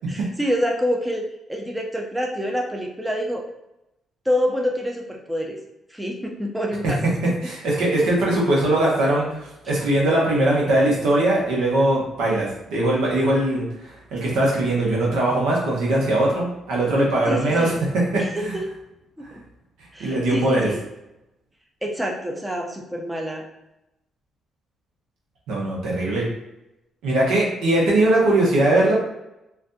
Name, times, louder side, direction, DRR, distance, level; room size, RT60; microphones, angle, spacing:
voice 1, 0.1-1.2 1.5-3.4 4.3-5.6 5.9-7.0 17.3-17.7 18.2-18.6 19.3-19.4 19.9-20.8 21.8-23.4, equal, 10° right, 0 dB, 0.5 m, -26 dB
voice 2, 7.4-18.6 20.0-20.7 25.5-26.3 27.0-28.9, right 1 dB, 90° right, -4 dB, 1.0 m, -21 dB
3.3 x 2.5 x 2.7 m, 0.90 s
cardioid pair, 90°, 0 cm